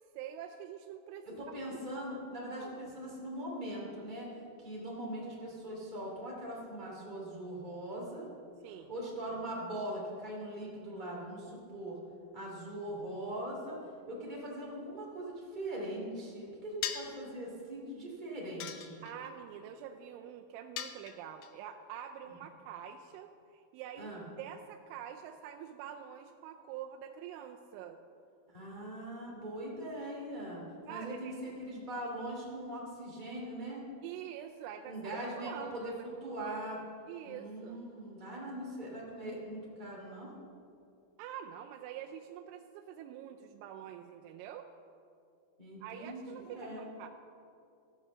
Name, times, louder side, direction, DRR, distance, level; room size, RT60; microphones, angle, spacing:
voice 1, 0.1-1.6 2.6-2.7 8.6-8.9 19.0-28.0 30.9-31.5 34.0-35.9 37.1-37.8 41.2-44.7 45.8-47.1, right 9 dB, 85° right, 3 dB, 3.0 m, -46 dB
voice 2, 1.2-4.3 4.6-8.3 8.9-12.0 12.3-13.8 14.1-19.0 24.0-24.2 28.5-33.9 34.8-36.8 37.2-40.4 45.6-46.8, right 1 dB, 15° right, -4 dB, 1.5 m, -41 dB
sound 1, 16.8-17.2 18.6-19.3 20.8-21.5, left 10 dB, 80° left, 2.6 m, -39 dB
16.0 x 5.5 x 7.0 m, 2.5 s
omnidirectional pair, 5.4 m